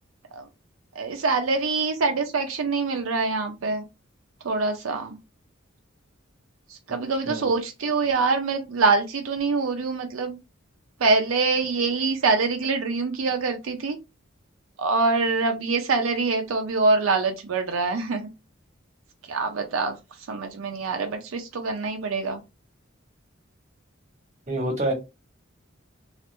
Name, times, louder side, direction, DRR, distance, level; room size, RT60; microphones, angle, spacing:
voice 1, 0.9-3.8 4.4-5.2 6.7-10.4 11.0-14.0 14.8-18.3 19.3-22.4, right 4 dB, 85° right, 0.5 m, -25 dB
voice 2, 24.5-24.9, right 1 dB, 35° right, 1.1 m, -26 dB
3.0 x 2.4 x 3.2 m
head